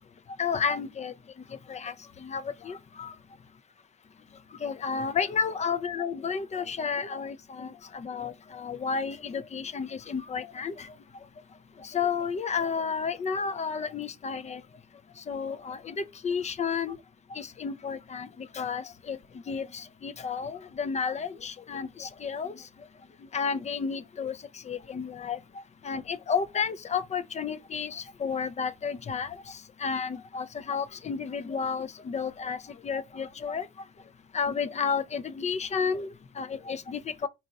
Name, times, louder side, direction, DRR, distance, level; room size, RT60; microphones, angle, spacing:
voice 1, 0.4-1.1 1.7-1.9 2.2-3.1 4.6-10.9 11.8-14.6 15.3-17.0 17.3-19.2 19.5-22.6 23.3-24.4 24.7-25.4 25.8-32.6 32.8-33.7 34.3-37.3, left 6 dB, 35° left, 0.5 m, -32 dB
4.0 x 2.4 x 4.0 m
cardioid pair, 90°, 20 cm